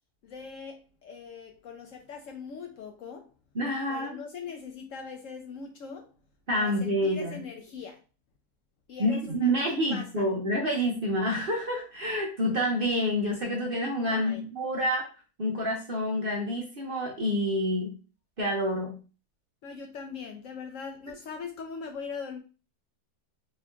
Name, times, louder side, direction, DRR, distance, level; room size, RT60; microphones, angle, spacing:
voice 1, 0.2-3.3 3.9-6.1 6.5-8.0 8.9-10.3 14.0-14.4 19.6-22.4, left 5 dB, 65° left, 4 dB, 0.8 m, -41 dB
voice 2, 3.5-4.1 6.5-7.4 9.0-15.1 15.4-17.9 18.4-18.9, equal, 50° right, -1 dB, 0.7 m, -28 dB
4.3 x 2.8 x 2.3 m, 0.33 s
omnidirectional pair, 1.7 m